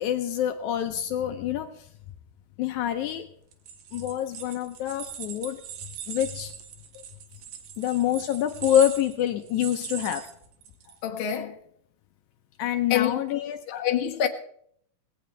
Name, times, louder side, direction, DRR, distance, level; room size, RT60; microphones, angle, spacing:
voice 1, 0.0-1.7 2.6-3.2 3.9-5.6 6.1-6.5 7.8-10.2 12.6-13.6, left 11 dB, 75° left, 2.0 m, -26 dB
sound 1, 3.5-11.0, right 9 dB, 85° right, 2.7 m, -40 dB
voice 2, 11.0-11.6 12.9-13.2 13.7-14.3, left 10 dB, 55° left, 1.7 m, -26 dB
19.0 x 16.5 x 3.3 m
omnidirectional pair, 3.6 m